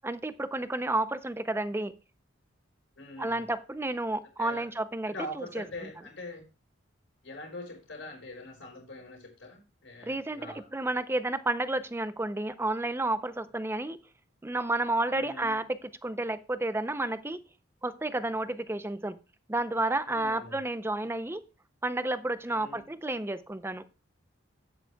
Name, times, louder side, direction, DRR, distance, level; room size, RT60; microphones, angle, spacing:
voice 1, 0.0-1.9 3.2-5.6 10.0-14.0 14.4-17.4 17.8-19.2 19.5-21.4 21.8-23.8, right 2 dB, 10° right, 13 dB, 0.5 m, -31 dB
voice 2, 3.0-3.4 4.4-4.7 5.1-6.4 7.2-10.7 15.1-15.6 20.1-20.6 22.5-22.8, left 1 dB, 75° left, -7 dB, 4.0 m, -43 dB
12.0 x 9.6 x 2.3 m, 0.31 s
head